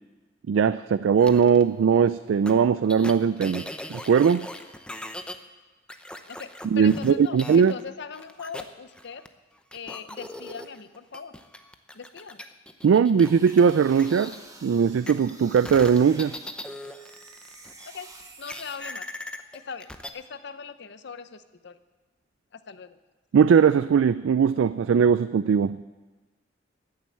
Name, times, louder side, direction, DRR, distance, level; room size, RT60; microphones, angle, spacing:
voice 1, 0.5-4.5 6.7-7.7 12.8-14.3 14.6-16.4 23.3-25.8, right 6 dB, 85° right, 14 dB, 0.3 m, -20 dB
sound 1, 1.2-1.6 2.5-2.6 2.9-5.3 5.9-7.9 8.1-9.3 9.7-14.4 15.1-17.9 18.4-20.1, left 1 dB, 5° left, 0.7 m, -40 dB
voice 2, 6.3-9.2 9.7-11.3 11.9-12.4 17.9-18.1 18.4-19.1 19.5-21.8 22.5-23.0, left 5 dB, 65° left, 12 dB, 0.7 m, -40 dB
sound 2, 13.2-16.5 16.8-18.8, right 3 dB, 20° right, 1.3 m, -49 dB
13.5 x 7.6 x 8.5 m, 1.2 s
head